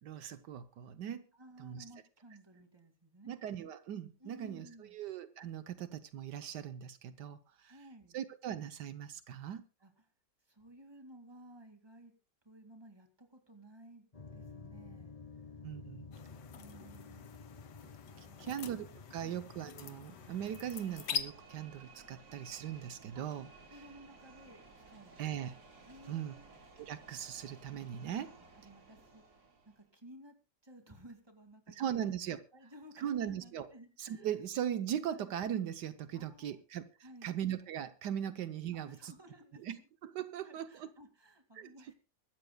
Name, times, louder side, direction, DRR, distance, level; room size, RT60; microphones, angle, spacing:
voice 1, 0.0-1.2 1.6-1.8 3.3-7.7 8.1-9.6 15.6-16.1 18.2-23.5 25.2-25.5 26.1-26.3 26.8-28.3 31.7-32.4 33.0-33.7 34.0-36.9 37.2-39.1 39.6-40.9 41.5-41.7, right 10 dB, 80° right, 1.4 m, -39 dB
voice 2, 1.3-3.3 4.2-5.0 7.7-8.2 9.8-10.1 10.4-12.1 12.4-14.1 14.3-15.2 16.6-17.3 18.1-18.7 19.2-19.4 23.1-23.2 23.7-25.6 25.8-26.5 28.5-30.4 30.6-32.1 32.5-34.3 35.1-35.3 36.1-36.6 37.0-37.4 38.2-38.3 38.7-39.9 40.3-41.9, right 1 dB, 15° right, 2.2 m, -56 dB
sound 1, 14.1-20.8, left 4 dB, 25° left, 0.9 m, -52 dB
sound 2, 16.1-21.2, left 7 dB, 80° left, 1.7 m, -44 dB
sound 3, 20.0-29.9, right 3 dB, 65° right, 3.2 m, -57 dB
24.0 x 13.0 x 2.3 m
omnidirectional pair, 1.8 m